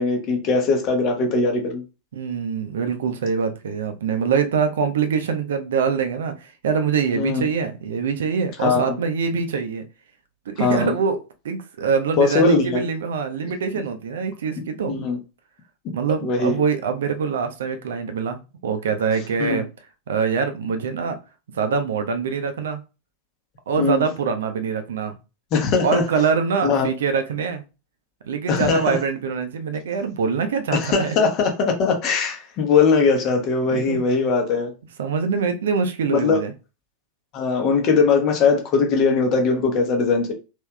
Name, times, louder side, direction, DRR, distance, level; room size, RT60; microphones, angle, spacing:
voice 1, 0.0-1.8 7.2-7.4 8.6-9.0 10.6-10.9 12.2-12.8 14.9-15.2 16.2-16.6 19.4-19.6 23.8-24.1 25.5-26.0 26.6-26.9 28.5-29.0 30.8-34.7 36.0-36.4 37.3-40.3, left 4 dB, 40° left, 0.9 m, -20 dB
voice 2, 2.1-9.8 10.5-11.2 11.4-14.9 15.9-19.7 20.1-21.2 21.5-22.8 23.7-25.2 25.8-27.6 28.2-31.2 33.7-34.0 35.0-36.5, right 6 dB, 60° right, 0.5 m, -24 dB
3.3 x 3.0 x 2.3 m
figure-of-eight pair, 90°, 0 cm